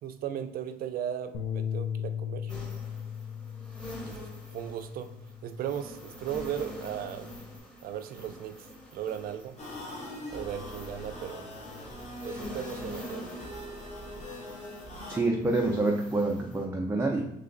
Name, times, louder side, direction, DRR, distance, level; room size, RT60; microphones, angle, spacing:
voice 1, 0.0-2.5 4.0-4.2 4.5-5.1 5.4-7.3 7.8-8.7 8.9-9.6 10.3-11.5 12.2-13.3, right 10 dB, 60° right, 9 dB, 0.5 m, -36 dB
Bass guitar, 1.3-5.8 6.2-7.6, left 8 dB, 85° left, 0.6 m, -38 dB
sound 1, 2.5-16.6, left 1 dB, 5° left, 1.0 m, -46 dB
sound 2, 9.6-15.2, left 1 dB, 45° left, 1.4 m, -41 dB
voice 2, 15.1-17.3, right 2 dB, 15° right, 0 dB, 0.5 m, -27 dB
3.3 x 3.0 x 3.8 m, 0.83 s
cardioid pair, 110°, 17 cm